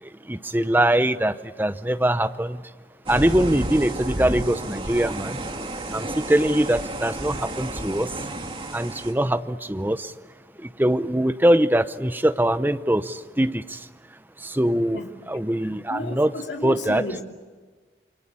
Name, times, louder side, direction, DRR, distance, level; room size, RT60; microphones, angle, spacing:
voice 1, 0.3-2.6 3.1-5.4 5.9-8.1 8.7-10.1 10.6-13.8 14.4-16.3 16.6-17.0, right 1 dB, 10° right, 11 dB, 0.7 m, -22 dB
sound 1, 3.1-9.1, right 1 dB, 30° right, 2.4 m, -31 dB
voice 2, 15.9-17.2, left 1 dB, 90° left, 2 dB, 2.9 m, -32 dB
27.5 x 24.0 x 8.5 m, 1.4 s
head